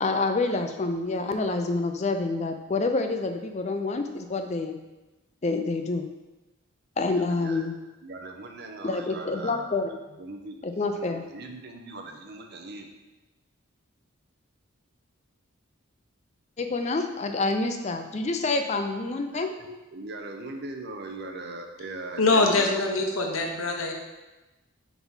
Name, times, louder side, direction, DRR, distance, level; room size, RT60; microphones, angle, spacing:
voice 1, 0.0-4.8 5.4-6.1 7.0-7.7 8.8-9.9 10.6-11.2 16.6-19.5, left 3 dB, 30° left, 6 dB, 0.4 m, -27 dB
voice 2, 7.2-7.7 8.0-10.6 10.9-12.9 19.3-22.7, right 2 dB, 50° right, 3 dB, 0.7 m, -40 dB
voice 3, 22.2-23.9, left 3 dB, 75° left, 2 dB, 0.9 m, -23 dB
4.6 x 4.0 x 5.4 m, 1.1 s
head